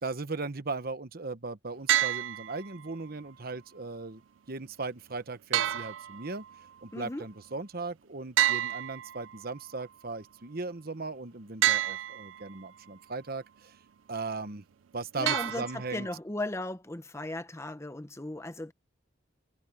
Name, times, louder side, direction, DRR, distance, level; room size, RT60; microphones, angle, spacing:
voice 1, 0.0-6.4 6.8-13.8 14.1-14.6 14.9-16.1, right 3 dB, 50° right, 1.0 m, -38 dB
sound 1, 1.9-2.9 5.5-6.6 8.4-9.6 11.6-12.6 15.3-16.2, right 12 dB, 80° right, 0.4 m, -29 dB
voice 2, 6.9-7.3 15.2-18.7, left 2 dB, 15° left, 0.8 m, -36 dB
head